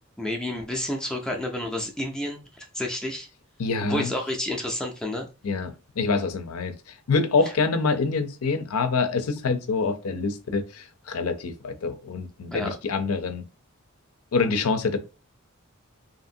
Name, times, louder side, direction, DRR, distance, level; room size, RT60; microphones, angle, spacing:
voice 1, 0.2-3.3 3.8-5.3 12.5-12.7, left 1 dB, 5° left, 0.4 m, -30 dB
voice 2, 3.6-4.1 5.4-13.4 14.3-15.0, left 4 dB, 80° left, 0.5 m, -26 dB
2.8 x 2.5 x 2.6 m
head